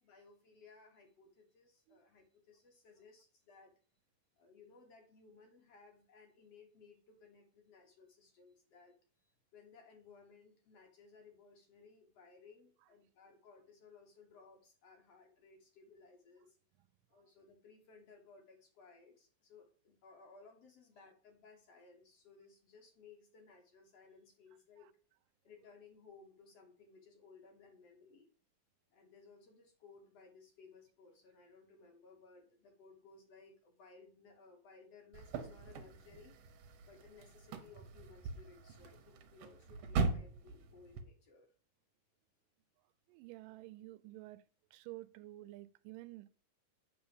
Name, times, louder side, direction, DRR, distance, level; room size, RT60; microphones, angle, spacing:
voice 1, 0.0-3.7 4.4-9.0 9.2-16.6 17.1-24.9 25.4-28.3 28.9-36.4 36.9-41.5, left 4 dB, 60° left, 3 dB, 1.9 m, -61 dB
sound 1, 35.1-41.0, right 4 dB, 65° right, 1.7 m, -41 dB
voice 2, 43.1-44.4 44.7-46.3, right 18 dB, 85° right, 15 dB, 2.1 m, -51 dB
8.8 x 4.0 x 7.0 m, 0.44 s
omnidirectional pair, 3.9 m